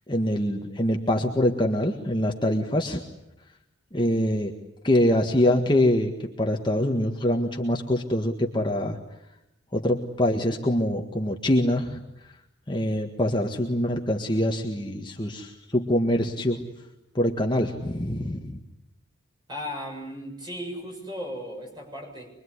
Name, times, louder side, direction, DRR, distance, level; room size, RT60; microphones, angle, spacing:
voice 1, 0.1-3.0 3.9-4.5 4.8-6.1 6.4-9.0 9.7-12.0 12.7-16.6 17.2-18.5, left 1 dB, 25° left, 2 dB, 1.7 m, -24 dB
voice 2, 19.5-22.3, equal, 20° right, 1 dB, 7.4 m, -36 dB
25.0 x 23.0 x 9.8 m, 0.86 s
head